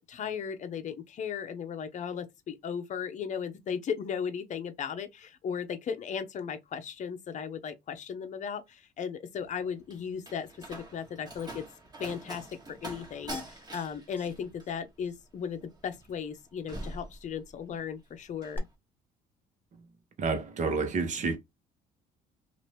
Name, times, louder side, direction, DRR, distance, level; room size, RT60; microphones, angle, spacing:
voice 1, 0.1-11.6 12.0-18.6, left 7 dB, 45° left, 0.7 m, -36 dB
Slam, 9.4-17.8 18.1-18.6, right 1 dB, 25° right, 1.2 m, -45 dB
sound 1, 13.3-13.9 14.2-14.3 14.6-14.7 15.0-15.2 18.5-18.6, left 2 dB, 10° left, 0.9 m, -42 dB
voice 2, 20.2-21.4, right 4 dB, 45° right, 1.0 m, -29 dB
2.8 x 2.6 x 3.3 m
cardioid pair, 110°, 17 cm